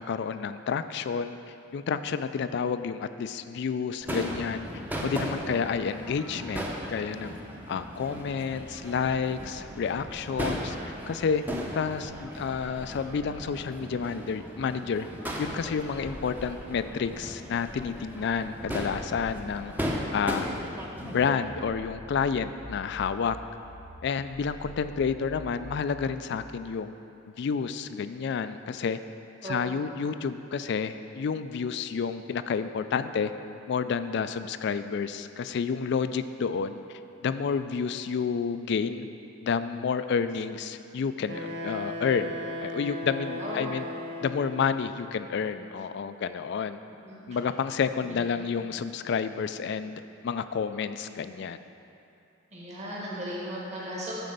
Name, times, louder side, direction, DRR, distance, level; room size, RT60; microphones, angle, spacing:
voice 1, 0.0-1.4 1.7-4.7 5.0-7.3 7.7-10.8 11.1-11.4 11.7-15.1 15.4-19.7 20.1-20.5 21.0-23.4 24.0-26.9 27.4-29.0 29.4-33.3 33.7-36.8 37.2-39.1 39.4-42.3 42.6-43.8 44.2-46.8 47.3-51.6, left 6 dB, 60° left, 11 dB, 0.3 m, -30 dB
Crowd / Fireworks, 4.0-21.3, equal, 10° right, 0.7 m, -37 dB
voice 2, 20.3-20.6 29.4-29.8 43.3-43.7 47.0-47.2 48.0-48.5 52.5-54.1, equal, 35° right, -7 dB, 1.6 m, -37 dB
sound 1, 21.0-26.4, equal, 30° left, 0.7 m, -46 dB
Wind instrument woodwind instrument, 41.3-44.7, left 1 dB, 80° right, 0.9 m, -36 dB
9.2 x 4.4 x 6.5 m, 2.7 s
head